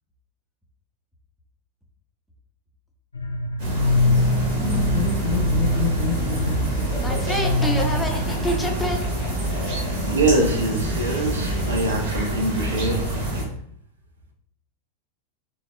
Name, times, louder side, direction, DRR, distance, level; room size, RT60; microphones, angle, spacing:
sound 1, 3.1-8.3, left 2 dB, 80° left, 0.3 m, -24 dB
sound 2, 3.6-13.4, right 1 dB, 45° right, 0.9 m, -26 dB
Laughter, 4.6-10.6, left 6 dB, 20° left, 0.8 m, -31 dB
voice 1, 7.0-9.1, equal, 5° left, 1 dB, 0.4 m, -27 dB
voice 2, 9.7-13.0, right 2 dB, 70° right, 2 dB, 0.5 m, -24 dB
3.3 x 2.0 x 2.4 m, 0.65 s
figure-of-eight pair, 90°, 0 cm